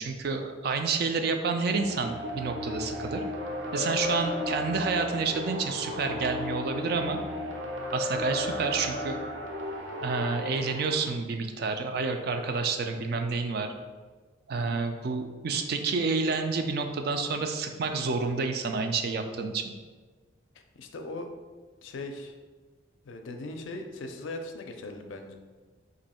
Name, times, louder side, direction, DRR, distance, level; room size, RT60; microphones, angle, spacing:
voice 1, 0.0-3.2 3.7-7.2 7.9-9.2 10.0-13.7 14.5-19.7, right 4 dB, 50° right, 6 dB, 0.3 m, -29 dB
sound 1, 1.8-11.1, left 1 dB, 85° right, 0.7 m, -34 dB
voice 2, 20.5-21.3 21.8-22.4 23.0-25.4, left 2 dB, 75° left, 5 dB, 0.4 m, -39 dB
3.0 x 2.6 x 4.2 m, 1.4 s
head